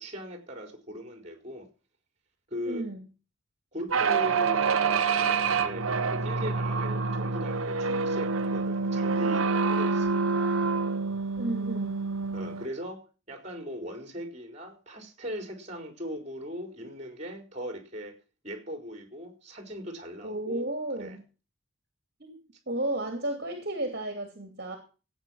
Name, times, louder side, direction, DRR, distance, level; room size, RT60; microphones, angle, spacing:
voice 1, 0.0-1.7 2.5-2.8 3.7-10.7 12.3-18.2 18.4-20.7 21.0-21.2, equal, 35° right, 4.3 m, -39 dB
voice 2, 2.7-3.1 11.4-12.0 20.2-21.2 22.2-24.8, right 1 dB, 50° right, 2.8 m, -33 dB
sound 1, 3.9-12.7, right 4 dB, 85° right, 1.0 m, -27 dB
16.5 x 9.1 x 6.3 m
head